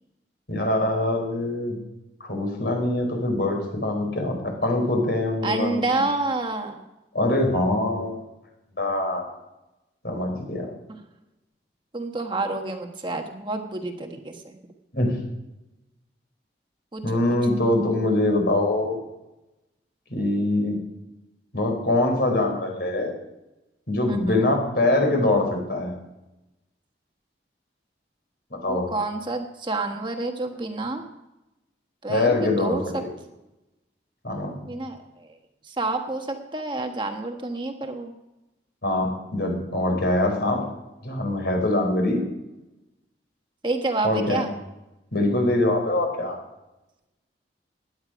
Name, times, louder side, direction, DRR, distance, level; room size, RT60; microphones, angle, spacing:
voice 1, 0.5-1.8 2.2-6.0 7.1-8.2 8.8-9.2 10.0-10.7 14.9-15.2 17.0-19.0 20.1-20.8 21.5-23.1 23.9-25.9 28.5-28.9 32.1-33.1 34.2-34.6 38.8-40.6 41.0-42.2 44.0-44.4 45.1-46.4, left 1 dB, 65° left, 2 dB, 4.6 m, -23 dB
voice 2, 5.4-6.8 11.9-14.6 16.9-17.0 24.1-24.4 28.7-31.0 32.0-33.0 34.7-35.3 35.7-38.1 43.6-44.5, right 2 dB, 25° right, 4 dB, 1.3 m, -28 dB
17.0 x 11.0 x 5.1 m, 0.97 s
head